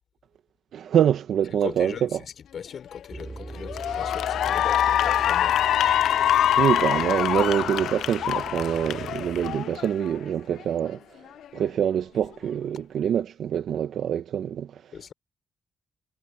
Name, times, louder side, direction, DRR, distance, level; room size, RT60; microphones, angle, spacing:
voice 1, 0.7-2.2 6.6-11.0 11.5-14.8, right 9 dB, 75° right, 1.1 m, -25 dB
voice 2, 1.6-6.0 14.9-15.1, left 7 dB, 55° left, 4.5 m, -39 dB
Cheering / Applause, 2.9-3.2 3.7-10.2, left 11 dB, 85° left, 0.4 m, -24 dB
sound 1, 3.1-9.6, right 3 dB, 20° right, 2.6 m, -40 dB
cardioid pair, 125°, 0 cm